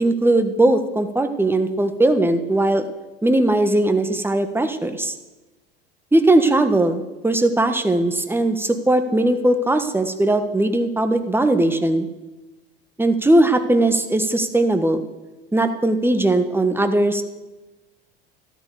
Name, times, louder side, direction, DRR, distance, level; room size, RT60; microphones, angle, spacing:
voice 1, 0.0-2.9 3.2-5.1 6.1-12.1 13.0-15.0 15.5-17.2, right 1 dB, 5° right, 8 dB, 1.5 m, -19 dB
13.5 x 13.0 x 7.0 m, 1.1 s
figure-of-eight pair, 75°, 31 cm